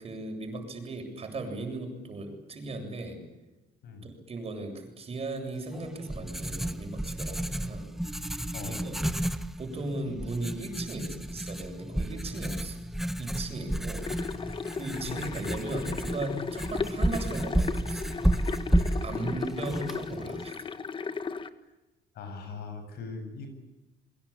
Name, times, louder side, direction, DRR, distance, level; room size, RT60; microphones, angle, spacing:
voice 1, 0.0-3.2 4.0-7.9 8.7-9.0 9.6-12.8 13.2-14.1 14.7-18.0 19.0-20.7, right 2 dB, 35° right, 4 dB, 7.9 m, -37 dB
Writing, 5.7-20.5, right 1 dB, ahead, 1.5 m, -32 dB
voice 2, 8.5-8.8 15.0-15.2 21.6-21.7 22.1-23.5, left 4 dB, 70° left, 7 dB, 7.9 m, -40 dB
sound 1, 14.0-21.5, left 5 dB, 30° left, 1.6 m, -36 dB
28.5 x 23.5 x 8.8 m, 1.0 s
cardioid pair, 110°, 17 cm